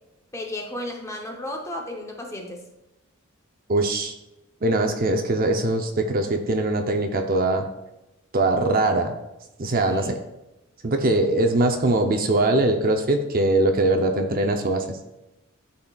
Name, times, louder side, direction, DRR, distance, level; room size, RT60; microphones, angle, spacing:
voice 1, 0.3-2.7 9.8-10.1, left 1 dB, 15° left, 2 dB, 0.8 m, -34 dB
voice 2, 3.7-4.1 4.6-7.7 8.3-9.1 9.6-10.2 10.8-15.0, right 2 dB, 45° right, 5 dB, 0.6 m, -22 dB
12.0 x 4.2 x 2.3 m, 0.96 s
head